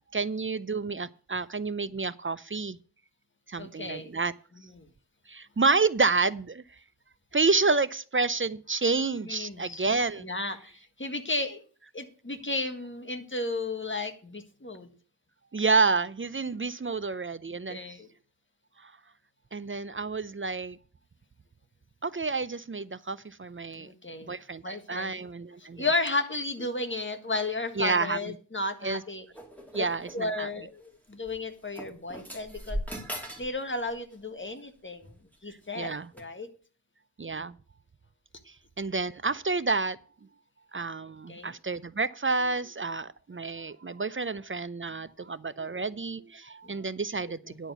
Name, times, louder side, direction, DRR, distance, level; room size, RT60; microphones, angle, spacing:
voice 1, 0.0-2.8 3.5-4.3 5.3-6.6 7.3-10.3 15.5-17.8 18.8-18.9 19.5-20.8 22.0-23.9 24.3-25.9 27.8-28.3 28.8-29.0 29.7-30.5 35.7-36.1 37.2-37.5 38.5-40.0 40.7-47.7, right 4 dB, 30° right, 16 dB, 0.5 m, -29 dB
voice 2, 3.6-4.1 4.6-4.8 9.2-9.9 10.2-11.6 11.9-14.9 17.7-18.1 23.8-24.3 24.6-25.2 25.7-29.2 29.8-29.9 30.1-32.8 33.4-35.1 35.4-36.5 41.3-41.5 46.6-46.8, left 2 dB, 30° left, 7 dB, 1.6 m, -33 dB
sound 1, 29.3-30.3 31.2-31.4 31.8-33.6 33.8-34.2 35.0-35.4 36.1-36.2, equal, 5° left, 2.6 m, -39 dB
10.5 x 4.5 x 8.0 m, 0.40 s
wide cardioid pair, 50°, 39 cm